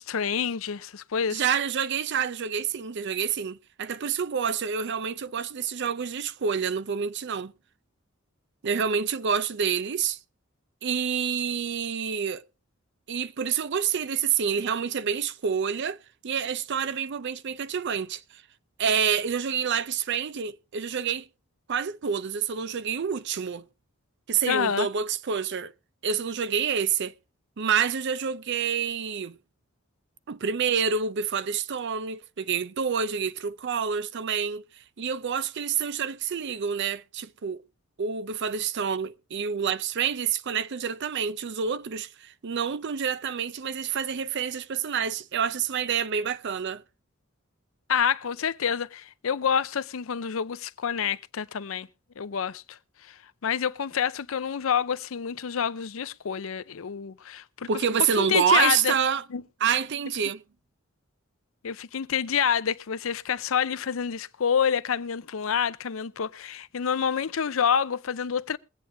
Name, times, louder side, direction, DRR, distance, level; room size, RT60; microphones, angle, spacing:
voice 1, 0.0-1.4 24.4-24.9 47.9-51.9 52.2-52.8 53.1-53.2 53.4-57.7 58.2-58.9 59.3-59.4 61.6-68.6, left 7 dB, 80° left, 0.6 m, -27 dB
voice 2, 1.3-7.5 8.6-10.2 10.8-12.4 13.1-16.0 16.2-18.2 18.8-21.3 21.7-23.7 24.3-25.7 26.0-27.1 27.6-29.4 30.3-34.6 35.0-37.6 38.0-46.8 57.7-59.2 59.6-60.4, right 7 dB, 60° right, 0.5 m, -28 dB
22.5 x 8.6 x 2.7 m
head